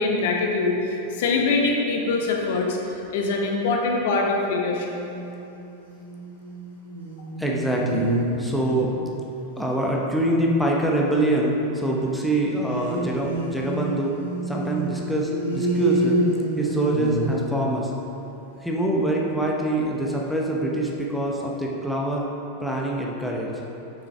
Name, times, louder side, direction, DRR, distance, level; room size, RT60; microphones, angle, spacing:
voice 1, 0.0-2.8 3.1-4.9, left 3 dB, 55° left, 0 dB, 0.9 m, -23 dB
sound 1, 4.8-5.6 5.9-9.0 12.7-18.0, right 1 dB, 65° right, 1.4 m, -28 dB
voice 2, 7.4-8.1 8.4-8.9 9.6-14.1 14.5-16.2 16.6-17.9 18.6-22.3 22.6-23.5, right 1 dB, ahead, -3 dB, 0.8 m, -24 dB
7.6 x 6.1 x 3.3 m, 2.9 s
figure-of-eight pair, 90°, 0 cm